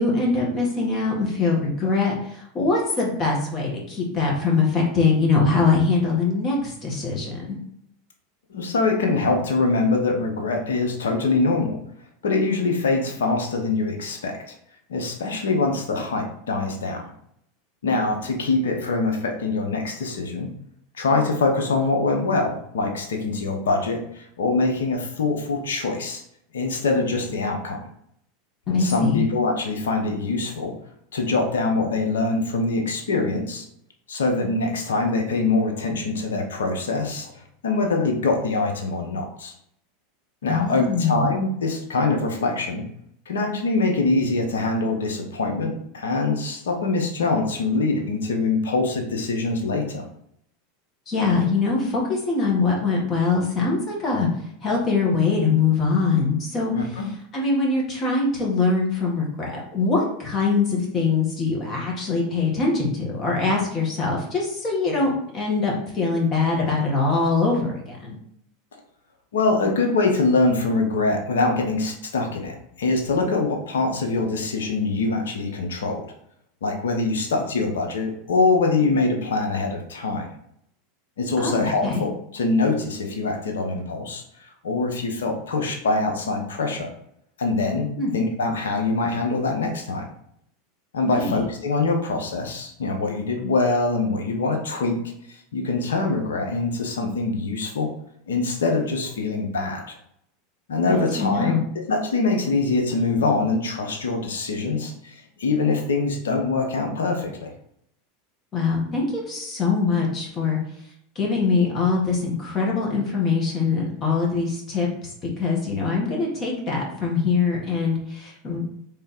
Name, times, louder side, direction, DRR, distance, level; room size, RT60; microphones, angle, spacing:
voice 1, 0.0-7.6 28.7-29.2 40.5-41.3 51.1-54.3 54.6-56.7 57.3-68.2 81.4-82.0 88.0-88.1 91.0-91.4 100.9-101.6 108.5-110.6 111.2-114.9 115.2-118.6, left 4 dB, 35° left, -2 dB, 1.8 m, -23 dB
voice 2, 8.5-11.8 12.2-14.4 14.9-17.0 17.8-20.5 21.0-26.2 26.5-27.9 28.7-30.7 31.1-33.6 34.1-37.3 37.6-39.5 40.4-42.9 43.3-50.0 56.7-57.1 69.3-76.0 76.6-80.3 81.2-84.2 84.6-86.9 87.4-90.1 90.9-95.0 95.3-97.9 98.3-99.8 100.7-101.5 101.9-105.1 105.4-107.5, left 3 dB, 85° left, 3 dB, 0.9 m, -24 dB
3.6 x 3.3 x 4.4 m, 0.72 s
hypercardioid pair, 95°, 0 cm